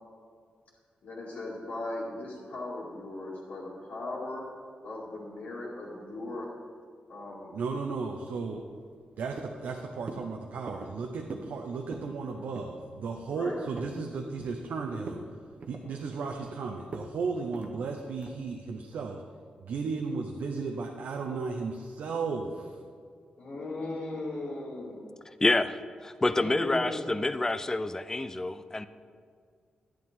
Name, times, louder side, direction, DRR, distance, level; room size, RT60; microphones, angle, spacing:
voice 1, 1.0-4.4 4.8-6.4 7.1-7.5 13.3-13.6 15.8-16.0 23.4-25.0 26.3-27.2, left 2 dB, 75° left, -9 dB, 2.4 m, -38 dB
voice 2, 7.5-8.6 9.2-15.2 15.7-19.2 19.6-22.8, right 4 dB, 85° right, 2 dB, 0.8 m, -34 dB
sound 1, 8.5-9.1 9.4-9.7 10.1-10.3 10.7-11.0 11.3-11.6 11.8-12.1 12.5-12.8 13.2-14.0 14.4-14.7 15.0-15.3 15.6-16.5 16.9-17.1 17.5-17.7 18.2-18.5, right 3 dB, 55° right, 0.9 m, -43 dB
voice 3, 25.4-25.7 26.0-28.9, left 2 dB, 20° left, 12 dB, 0.5 m, -27 dB
11.5 x 10.5 x 3.7 m, 2.1 s
wide cardioid pair, 110°, 3 cm